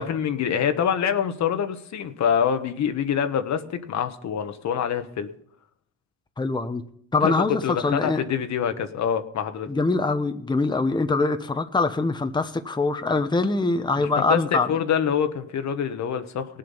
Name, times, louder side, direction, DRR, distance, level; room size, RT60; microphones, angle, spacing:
voice 1, 0.0-5.3 7.2-9.7 14.0-16.6, left 8 dB, 65° left, 8 dB, 1.2 m, -25 dB
voice 2, 6.4-6.8 7.1-8.2 9.7-14.7, left 3 dB, 15° left, 8 dB, 0.9 m, -23 dB
18.5 x 7.7 x 5.5 m, 0.64 s
cardioid pair, 90°, 30 cm